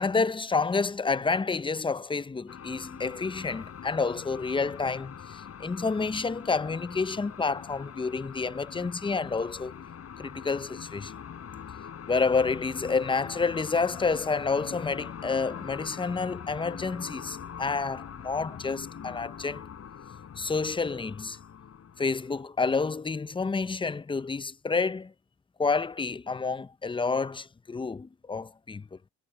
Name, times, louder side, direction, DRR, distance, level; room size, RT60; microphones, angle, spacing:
voice 1, 0.0-9.7 10.2-11.1 12.1-19.7 20.4-21.4 22.0-25.1 25.6-28.9, left 4 dB, 15° left, 0.6 m, -29 dB
sound 1, 2.5-22.4, left 8 dB, 55° left, 7.9 m, -43 dB
cardioid pair, 90°, 30 cm